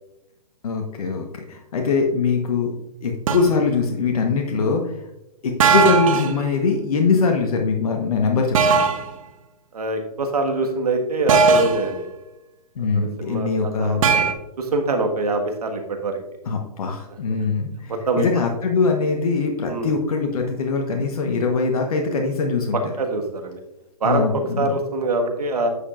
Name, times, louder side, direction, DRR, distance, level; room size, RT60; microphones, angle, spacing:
voice 1, 0.6-2.7 3.0-5.0 5.4-8.8 12.8-14.0 16.4-22.8 24.0-24.8, left 4 dB, 65° left, 2 dB, 1.2 m, -22 dB
sound 1, 3.3-3.5 5.6-6.4 8.5-9.1 11.3-11.9 14.0-14.3, right 5 dB, 55° right, 0.9 m, -18 dB
voice 2, 9.7-12.1 12.9-14.2 14.6-16.2 17.9-18.3 19.7-19.9 22.7-23.6 24.0-24.3 24.6-25.7, right 2 dB, 75° right, 4 dB, 1.6 m, -24 dB
9.9 x 6.8 x 2.5 m, 0.89 s
hypercardioid pair, 130°, 20 cm